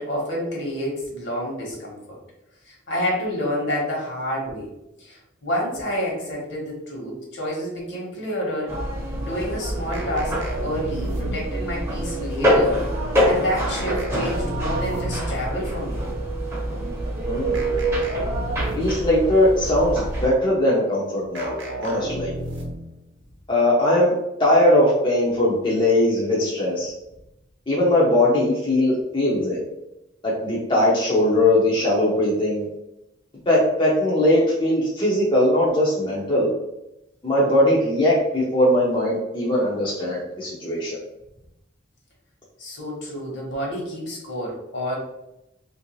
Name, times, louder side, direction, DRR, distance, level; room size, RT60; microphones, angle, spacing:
voice 1, 0.0-2.2 2.6-4.7 5.0-8.7 9.2-12.9 13.2-16.0 42.6-45.0, equal, 60° left, -2 dB, 1.2 m, -29 dB
sound 1, 8.7-20.3, equal, 15° right, 0.8 m, -25 dB
sound 2, 9.9-11.7 13.7-15.4 17.5-19.1 21.3-22.9, right 1 dB, 65° right, 0.7 m, -33 dB
voice 2, 17.3-17.6 18.8-22.3 23.5-24.1 24.4-26.9 27.7-29.6 30.2-32.7 33.5-36.5 37.2-41.0, left 1 dB, 25° left, -6 dB, 0.6 m, -20 dB
3.1 x 2.6 x 3.0 m, 0.89 s
head